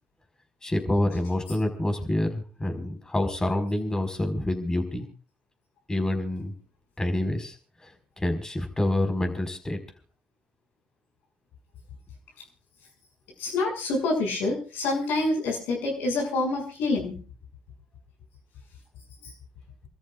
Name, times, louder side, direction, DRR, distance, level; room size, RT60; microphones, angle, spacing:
voice 1, 0.6-5.0 5.9-6.5 7.0-7.5 7.8-9.8, left 1 dB, 20° left, 5 dB, 5.0 m, -27 dB
voice 2, 13.4-17.1, left 2 dB, 75° left, 0 dB, 6.6 m, -27 dB
29.5 x 13.5 x 2.5 m, 0.38 s
hypercardioid pair, 50°, 3 cm